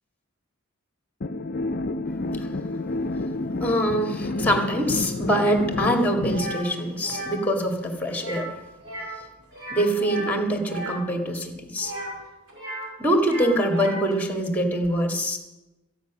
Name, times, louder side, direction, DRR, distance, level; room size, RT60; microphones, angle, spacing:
sound 1, 1.2-6.5, left 2 dB, 45° left, 0.6 m, -29 dB
voice 1, 3.6-8.5 9.7-11.9 13.0-15.4, equal, 5° left, 4 dB, 2.0 m, -24 dB
sound 2, 6.3-6.6 7.0-7.4 8.1-8.5 8.8-9.2 9.5-11.0 11.8-12.9 13.2-14.1, right 1 dB, 60° right, 5.5 m, -35 dB
14.0 x 10.5 x 6.1 m, 1.0 s
head